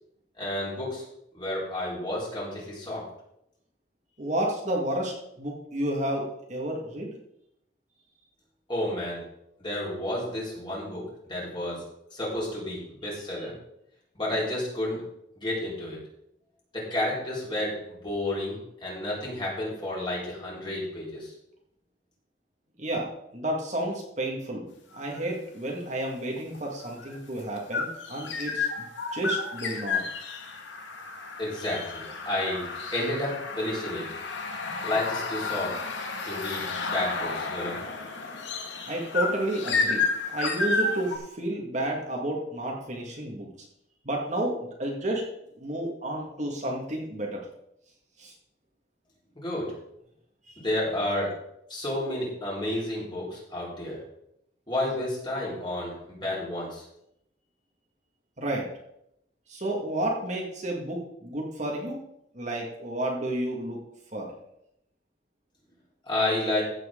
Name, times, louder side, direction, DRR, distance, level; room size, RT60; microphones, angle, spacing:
voice 1, 0.4-1.0 1.3-3.0 8.7-9.2 9.6-11.8 12.1-13.5 14.1-15.0 15.4-16.0 16.7-17.8 18.0-21.3 31.4-34.0 34.8-35.7 36.2-37.8 49.3-49.7 50.6-51.3 51.7-54.0 54.7-56.8 66.1-66.6, left 1 dB, 25° left, -6 dB, 4.5 m, -31 dB
voice 2, 4.2-7.1 22.8-28.7 29.1-30.0 38.9-43.5 44.1-45.2 45.6-47.5 48.2-48.3 50.5-50.6 58.4-58.7 59.5-62.0 62.3-63.8 64.1-64.3, right 1 dB, 40° right, -1 dB, 2.0 m, -31 dB
sound 1, 24.9-25.3 26.4-41.2, left 4 dB, 75° left, 1.8 m, -32 dB
15.0 x 7.7 x 3.8 m, 0.77 s
head